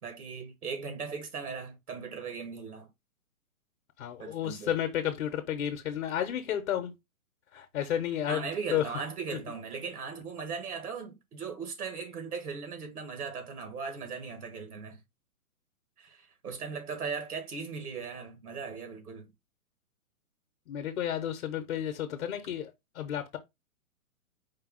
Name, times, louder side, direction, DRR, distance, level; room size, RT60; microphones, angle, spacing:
voice 1, 0.0-2.9 4.2-4.7 8.3-15.0 16.0-19.3, right 5 dB, 85° right, 1.6 m, -38 dB
voice 2, 4.0-6.9 7.5-8.9 20.7-23.4, left 10 dB, 50° left, 0.8 m, -32 dB
4.6 x 2.3 x 4.7 m
hypercardioid pair, 140°, 43 cm